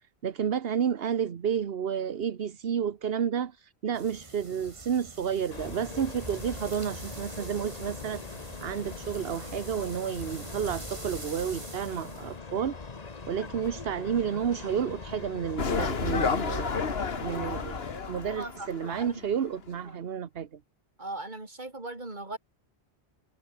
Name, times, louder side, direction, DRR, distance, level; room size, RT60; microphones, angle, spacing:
voice 1, 0.2-12.8 13.3-16.8 17.2-17.8 18.1-20.6, right 8 dB, 65° right, 1.2 m, -31 dB
sound 1, 3.9-12.3, right 1 dB, 30° right, 3.0 m, -44 dB
sound 2, 5.5-18.0, left 4 dB, 40° left, 1.4 m, -42 dB
sound 3, 15.6-19.5 19.7-19.8, left 5 dB, 65° left, 1.7 m, -31 dB
voice 2, 18.4-19.2 19.8-20.0 21.0-22.4, right 2 dB, 45° right, 3.5 m, -39 dB
omnidirectional pair, 1.1 m